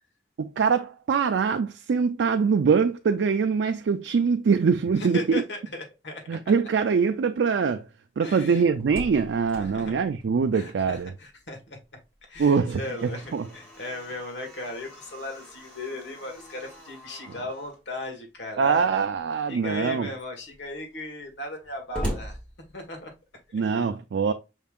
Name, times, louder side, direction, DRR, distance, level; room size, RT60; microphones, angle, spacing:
voice 1, 0.4-5.4 6.3-7.9 8.2-11.1 12.4-12.8 13.3-13.5 18.6-20.1 23.5-24.3, right 5 dB, 90° right, 0.4 m, -23 dB
voice 2, 5.0-6.2 8.2-8.7 9.6-9.9 10.5-11.8 12.3-18.9 19.5-22.4 22.7-23.1 23.5-23.6, left 2 dB, 90° left, 1.5 m, -37 dB
Slam, 8.5-11.3 11.6-11.7 12.2-17.8 18.7-19.3 19.8-19.9 20.1-23.2, equal, 5° left, 1.6 m, -41 dB
5.5 x 3.5 x 2.4 m
head